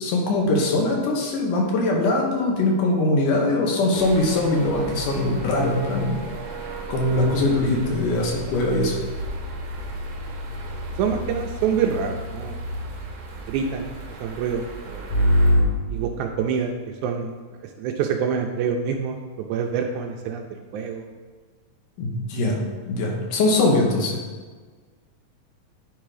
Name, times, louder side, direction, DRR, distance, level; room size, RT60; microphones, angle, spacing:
voice 1, 0.0-6.2 6.9-9.0 22.0-22.6 22.9-24.2, left 2 dB, 80° left, -1 dB, 2.7 m, -22 dB
sound 1, 3.9-15.5, right 3 dB, 60° right, 1.7 m, -37 dB
sound 2, 8.6-13.0 15.1-15.6, equal, 55° left, 1.9 m, -25 dB
voice 2, 11.0-12.6 13.5-13.9 14.2-15.1 15.9-16.8 17.0-17.4 17.6-20.4 20.7-21.1, right 7 dB, 80° right, 3 dB, 1.8 m, -26 dB
9.8 x 3.6 x 4.9 m, 1.4 s
omnidirectional pair, 3.8 m